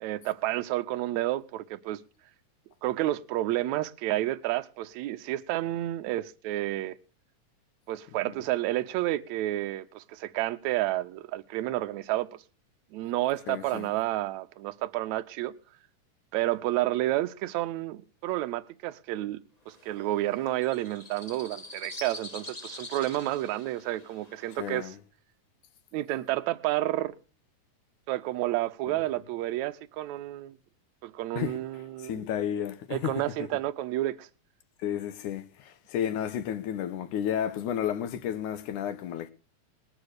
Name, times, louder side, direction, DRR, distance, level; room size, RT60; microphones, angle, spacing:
voice 1, 0.0-2.0 2.8-7.0 7.9-12.4 12.9-15.5 16.3-19.4 19.7-24.9 25.9-27.1 28.1-30.5 31.0-32.3 32.9-34.3, right 15 dB, 70° right, 2.0 m, -30 dB
voice 2, 13.5-13.9 24.6-25.0 28.9-29.0 31.4-31.6 32.0-33.5 34.8-39.3, left 9 dB, 75° left, 2.5 m, -32 dB
sound 1, 19.7-24.8, left 2 dB, 55° left, 0.4 m, -45 dB
20.5 x 7.1 x 6.5 m
omnidirectional pair, 3.7 m